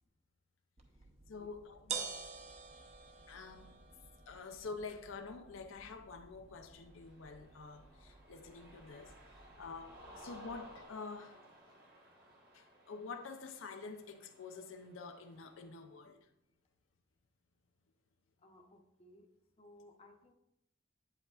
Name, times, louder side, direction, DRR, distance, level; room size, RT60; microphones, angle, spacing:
sound 1, 0.8-10.8, right 6 dB, 35° right, 0.7 m, -50 dB
voice 1, 1.3-2.2 3.3-3.7 4.3-11.4 12.5-16.3, left 4 dB, 80° left, 0.5 m, -48 dB
Cheering, 6.6-15.8, right 1 dB, 50° right, 1.2 m, -59 dB
voice 2, 18.4-19.3 19.6-20.3, left 1 dB, 30° left, 0.7 m, -60 dB
8.7 x 7.7 x 2.4 m
head